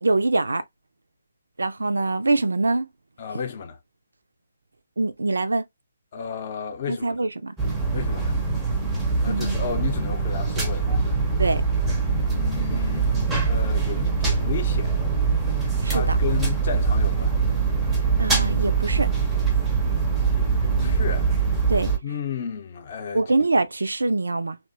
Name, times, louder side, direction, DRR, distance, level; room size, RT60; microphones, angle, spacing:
voice 1, 0.0-0.6 1.6-2.9 5.0-5.6 6.9-7.6 9.3-9.6 11.4-11.6 15.8-16.2 18.2-19.1 20.7-20.9 21.7-21.9 23.1-24.6, right 2 dB, 65° right, 0.3 m, -24 dB
voice 2, 3.2-3.8 6.1-7.2 7.9-8.4 9.2-11.2 12.3-15.0 15.9-17.3 20.3-21.3 22.0-23.2, left 7 dB, 35° left, 0.6 m, -33 dB
sound 1, 7.6-22.0, right 5 dB, 5° right, 0.6 m, -23 dB
2.7 x 2.1 x 2.4 m
figure-of-eight pair, 140°, 0 cm